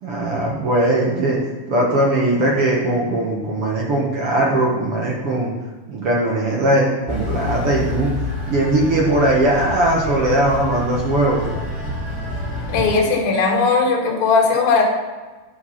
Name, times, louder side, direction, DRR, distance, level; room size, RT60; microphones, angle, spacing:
voice 1, 0.0-1.4 1.7-5.5 5.9-8.1 8.5-11.5, right 1 dB, 55° right, -3 dB, 1.7 m, -19 dB
sound 1, 7.1-12.9, left 1 dB, 5° right, 2.1 m, -27 dB
voice 2, 12.7-14.8, left 4 dB, 70° left, -1 dB, 3.3 m, -17 dB
11.5 x 4.6 x 5.7 m, 1.3 s
omnidirectional pair, 4.3 m